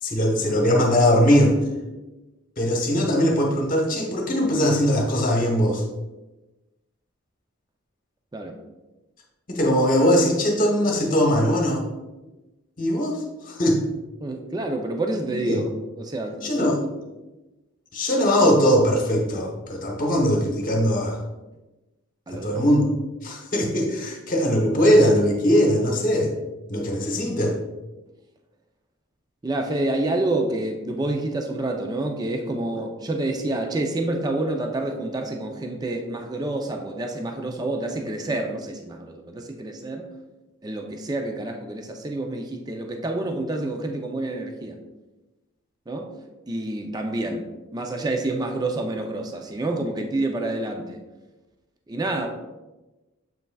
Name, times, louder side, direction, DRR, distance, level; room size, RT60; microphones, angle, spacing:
voice 1, 0.0-1.6 2.6-5.8 9.5-11.8 12.8-13.2 13.5-13.8 15.4-15.6 16.4-16.8 17.9-21.2 22.3-22.9 23.2-26.3 26.7-27.6, equal, 40° left, 0 dB, 1.0 m, -20 dB
voice 2, 14.2-16.7 22.3-22.6 29.4-40.1 40.6-44.8 45.9-46.1 46.5-51.0 51.9-52.3, right 2 dB, 20° right, 4 dB, 0.4 m, -28 dB
7.5 x 5.7 x 2.3 m, 1.1 s
head